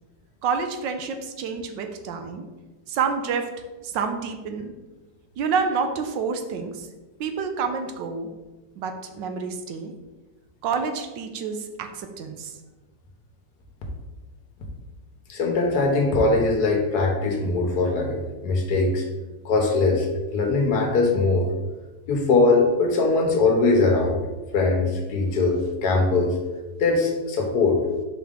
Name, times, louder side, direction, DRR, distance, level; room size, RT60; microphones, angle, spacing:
voice 1, 0.4-2.5 2.9-3.5 3.8-4.7 5.4-6.9 7.2-8.3 8.8-9.9 10.6-12.6, right 5 dB, 85° right, 6 dB, 1.4 m, -28 dB
voice 2, 15.3-18.2 18.4-19.0 19.4-20.1 20.3-21.5 22.1-24.2 24.5-26.4 26.8-27.8, left 3 dB, 65° left, 2 dB, 1.4 m, -21 dB
5.2 x 5.1 x 3.6 m, 1.2 s
omnidirectional pair, 2.0 m